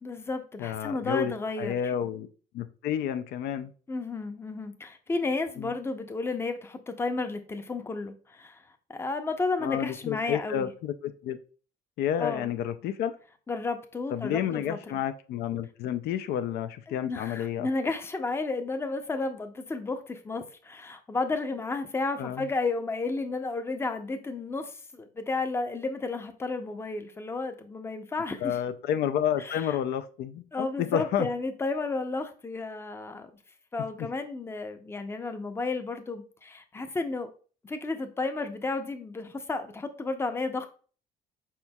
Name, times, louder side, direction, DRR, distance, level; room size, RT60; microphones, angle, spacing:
voice 1, 0.0-1.9 3.9-8.6 8.9-10.7 12.2-12.5 13.5-15.0 16.9-28.6 29.4-29.8 30.5-33.3 33.7-37.3 37.6-40.7, left 3 dB, 15° left, 0.5 m, -32 dB
voice 2, 0.6-2.3 2.5-3.7 5.6-5.7 9.6-11.4 12.0-13.1 14.1-17.7 22.2-22.5 28.4-31.3, left 9 dB, 70° left, 0.4 m, -30 dB
4.6 x 4.3 x 2.2 m
cardioid pair, 110°, 17 cm